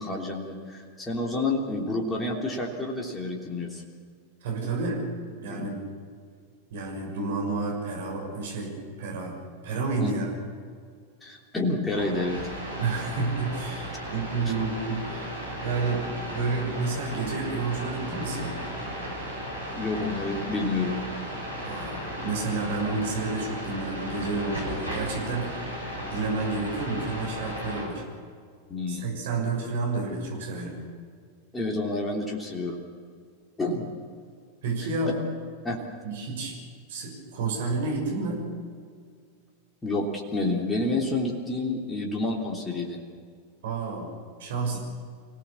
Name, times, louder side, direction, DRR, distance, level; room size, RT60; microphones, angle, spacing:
voice 1, 0.0-3.8 4.6-4.7 5.5-5.8 10.0-10.1 11.2-12.4 19.7-20.9 28.7-29.1 31.5-32.8 33.6-33.8 35.6-35.8 39.8-43.0, left 2 dB, 15° left, 0 dB, 3.3 m, -29 dB
voice 2, 4.4-5.0 5.3-5.8 6.7-8.7 9.0-9.4 9.6-10.3 12.8-15.3 15.6-18.5 21.6-25.6 25.9-28.0 28.9-30.8 34.6-35.1 36.0-36.5 36.9-38.4 43.6-44.1 44.4-44.8, right 3 dB, 55° right, -1 dB, 6.4 m, -30 dB
sound 1, 11.9-27.9, equal, 85° right, 6.8 m, -35 dB
27.0 x 17.5 x 7.1 m, 2.1 s
figure-of-eight pair, 90°, 0 cm